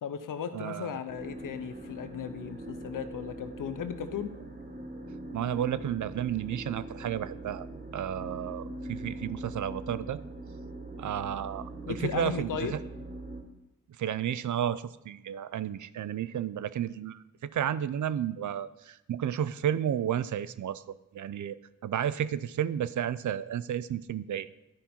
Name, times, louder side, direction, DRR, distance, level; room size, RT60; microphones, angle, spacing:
voice 1, 0.0-4.3 11.9-12.7, left 8 dB, 85° left, 10 dB, 0.7 m, -36 dB
voice 2, 0.5-1.0 5.3-7.7 7.9-10.2 11.0-12.8 14.0-21.6 21.8-24.5, right 10 dB, 70° right, 16 dB, 0.5 m, -32 dB
sound 1, 1.1-13.4, right 1 dB, 30° right, 1.4 m, -42 dB
11.5 x 5.3 x 4.3 m, 0.89 s
cardioid pair, 50°, 32 cm